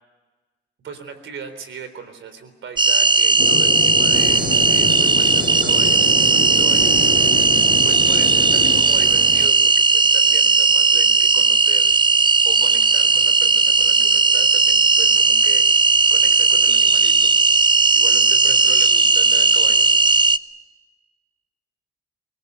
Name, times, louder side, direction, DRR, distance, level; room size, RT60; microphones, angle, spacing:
voice 1, 0.8-7.0 7.8-11.9 12.4-15.9 16.1-17.4 17.9-19.9, right 6 dB, 90° right, 10 dB, 3.8 m, -37 dB
sound 1, 2.8-20.4, right 3 dB, 25° right, 0.7 m, -16 dB
sound 2, 3.4-8.8, left 9 dB, 65° left, 0.8 m, -28 dB
sound 3, 4.1-9.5, right 5 dB, 45° right, 1.4 m, -33 dB
25.5 x 21.0 x 8.2 m, 1.3 s
wide cardioid pair, 130°, 19 cm